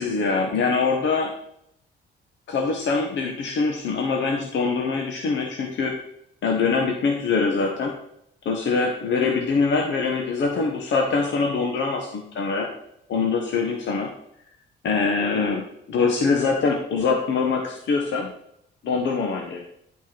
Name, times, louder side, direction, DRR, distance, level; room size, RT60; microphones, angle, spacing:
voice 1, 0.0-1.3 2.5-6.0 6.4-7.9 8.4-12.7 13.1-14.1 14.8-18.3 18.8-19.7, left 4 dB, 65° left, 2 dB, 1.3 m, -23 dB
10.5 x 5.6 x 4.5 m, 0.74 s
cardioid pair, 90°, 20 cm